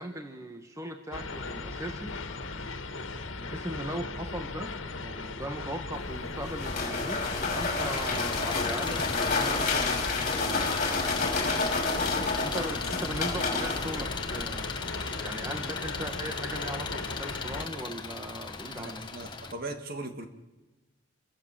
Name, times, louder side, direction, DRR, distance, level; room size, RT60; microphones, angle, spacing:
voice 1, 0.0-2.2 3.4-11.5 12.4-14.7 15.0-19.0, right 1 dB, 15° right, 5 dB, 1.5 m, -39 dB
sound 1, 1.1-17.7, left 3 dB, 75° left, 2.1 m, -37 dB
sound 2, 5.9-14.7, left 3 dB, 40° left, 5.8 m, -30 dB
Engine, 7.0-19.5, left 4 dB, 25° left, 1.8 m, -38 dB
voice 2, 18.7-20.3, right 2 dB, 45° right, 6 dB, 2.6 m, -39 dB
28.0 x 23.0 x 7.7 m, 1.1 s
head